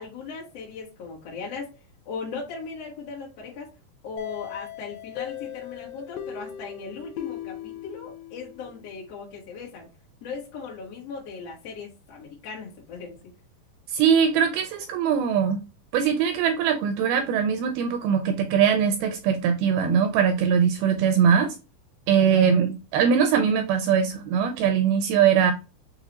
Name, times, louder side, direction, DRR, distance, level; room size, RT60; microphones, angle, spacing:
voice 1, 0.0-1.7 2.0-3.7 4.0-9.9 10.2-13.2 22.1-22.5, left 5 dB, 65° left, 1.6 m, -38 dB
sound 1, 4.2-8.9, left 11 dB, 80° left, 2.2 m, -38 dB
voice 2, 13.9-15.6 15.9-21.6 22.1-25.5, right 7 dB, 85° right, 2.2 m, -21 dB
6.5 x 2.3 x 2.9 m
omnidirectional pair, 4.7 m